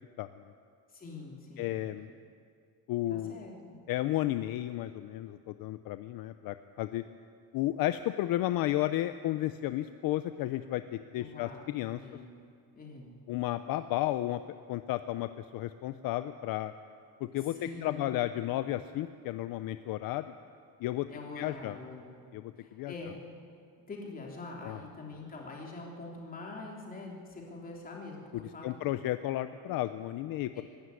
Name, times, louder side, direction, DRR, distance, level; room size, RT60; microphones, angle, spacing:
voice 1, 0.9-1.8 3.1-3.8 11.2-11.6 11.9-12.3 12.7-13.1 17.6-18.3 21.1-22.1 22.6-23.2 23.9-29.0 30.5-30.6, left 3 dB, 20° left, -1 dB, 3.3 m, -44 dB
voice 2, 1.6-2.1 2.9-3.4 3.9-7.0 7.5-12.0 13.3-14.4 14.7-16.7 17.3-20.2 20.8-21.1 21.3-21.8 22.3-22.9 24.6-24.8 28.6-30.6, left 15 dB, 60° left, 11 dB, 0.7 m, -33 dB
23.5 x 12.5 x 9.7 m, 2.3 s
cardioid pair, 180°, 39 cm